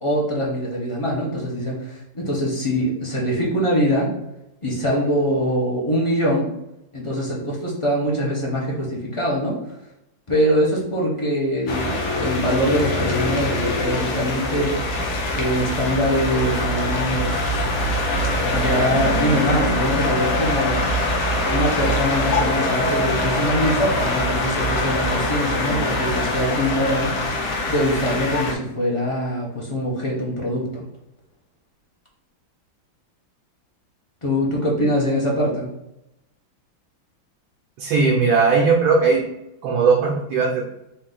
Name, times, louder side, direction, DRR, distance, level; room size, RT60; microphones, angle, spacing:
voice 1, 0.0-4.1 4.6-6.5 6.9-9.6 10.3-15.0 15.3-17.7 18.5-20.8 21.4-27.1 27.7-30.8 34.2-35.7, equal, 35° left, -4 dB, 0.4 m, -23 dB
sound 1, 11.7-28.5, left 1 dB, 60° left, 1.4 m, -23 dB
voice 2, 37.8-39.2 39.6-40.7, right 4 dB, 75° right, -2 dB, 1.5 m, -18 dB
4.6 x 2.7 x 3.9 m, 0.86 s
omnidirectional pair, 2.3 m